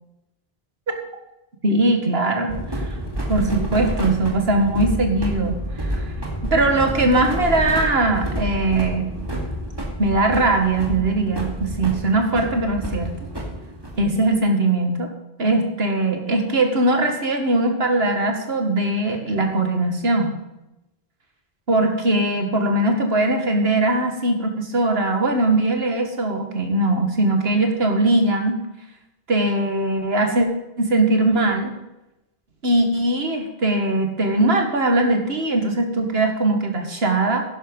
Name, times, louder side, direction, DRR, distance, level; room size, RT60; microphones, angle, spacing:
voice 1, 1.6-3.0 3.3-5.6 5.9-6.1 6.4-9.1 10.0-13.1 14.0-15.1 15.4-20.3 21.7-28.6 29.3-30.5 30.8-31.7 32.6-37.4, right 2 dB, 75° right, 4 dB, 2.1 m, -20 dB
sound 1, 2.5-14.3, right 1 dB, 25° right, 2.3 m, -29 dB
11.5 x 10.0 x 5.4 m, 0.93 s
omnidirectional pair, 1.0 m